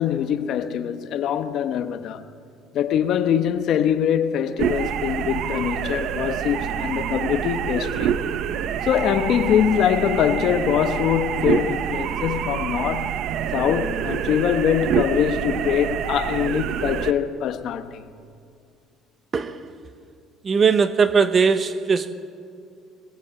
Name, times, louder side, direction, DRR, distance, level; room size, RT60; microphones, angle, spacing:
voice 1, 0.0-2.2 2.7-8.1 8.8-13.2 13.5-18.0, left 9 dB, 50° left, 1.0 m, -23 dB
sound 1, 4.6-17.1, right 9 dB, 55° right, 0.8 m, -26 dB
voice 2, 19.3-19.7 20.4-22.1, right 5 dB, 25° right, 0.9 m, -19 dB
22.0 x 20.5 x 7.7 m
cardioid pair, 170°, 0 cm